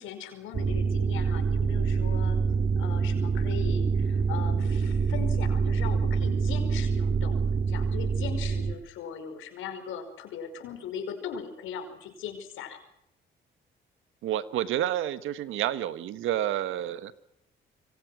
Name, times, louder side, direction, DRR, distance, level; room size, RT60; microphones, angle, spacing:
voice 1, 0.0-7.4 7.7-12.8, left 7 dB, 90° left, 7 dB, 5.4 m, -39 dB
sound 1, 0.5-8.7, right 5 dB, 45° right, 2.9 m, -26 dB
voice 2, 14.2-17.1, right 12 dB, 85° right, 13 dB, 1.5 m, -29 dB
27.5 x 24.0 x 6.2 m, 0.80 s
cardioid pair, 90°, 20 cm